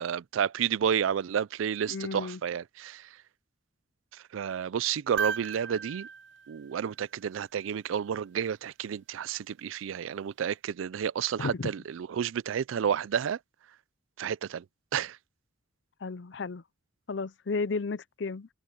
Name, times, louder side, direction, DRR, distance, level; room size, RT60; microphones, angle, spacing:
voice 1, 0.0-3.1 4.1-6.1 6.5-13.4 14.2-14.6 14.9-15.2, right 8 dB, 85° right, 0.4 m, -31 dB
voice 2, 1.9-2.4 11.4-11.7 16.0-16.6 17.1-18.5, left 4 dB, 60° left, 0.5 m, -33 dB
sound 1, 5.2-7.5 9.5-9.6, right 6 dB, 65° right, 0.8 m, -37 dB
head